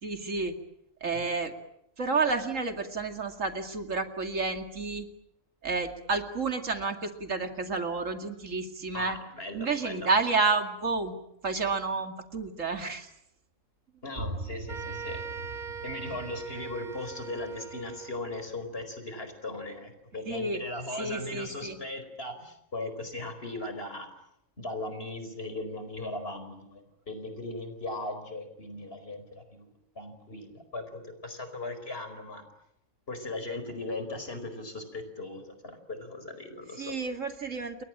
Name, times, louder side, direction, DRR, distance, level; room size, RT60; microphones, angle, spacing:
voice 1, 0.0-0.5 1.0-1.5 2.0-5.1 5.6-9.2 9.5-11.1 11.4-13.1 20.3-20.6 20.9-21.8 36.8-37.8, right 4 dB, 70° right, 6 dB, 2.6 m, -30 dB
voice 2, 8.9-10.1 14.0-15.2 15.8-24.1 24.6-29.7 29.9-32.4 33.1-37.0, left 2 dB, 45° left, 9 dB, 5.0 m, -38 dB
sound 1, 14.1-19.7, right 1 dB, 55° right, 1.9 m, -43 dB
sound 2, 14.7-18.3, right 6 dB, 35° right, 2.5 m, -41 dB
29.5 x 23.0 x 8.8 m, 0.78 s
omnidirectional pair, 1.4 m